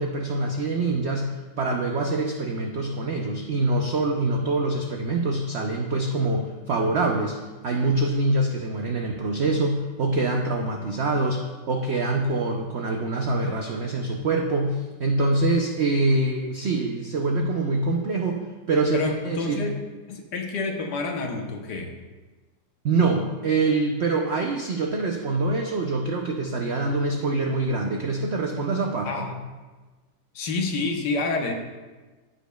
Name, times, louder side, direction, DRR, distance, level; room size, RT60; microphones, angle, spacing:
voice 1, 0.0-7.4 7.6-19.7 22.8-29.1, right 2 dB, 70° right, 1 dB, 0.6 m, -25 dB
voice 2, 18.9-19.7 20.1-21.9 29.0-29.3 30.3-31.5, left 3 dB, 75° left, 3 dB, 1.4 m, -28 dB
14.0 x 5.1 x 2.2 m, 1.3 s
omnidirectional pair, 1.9 m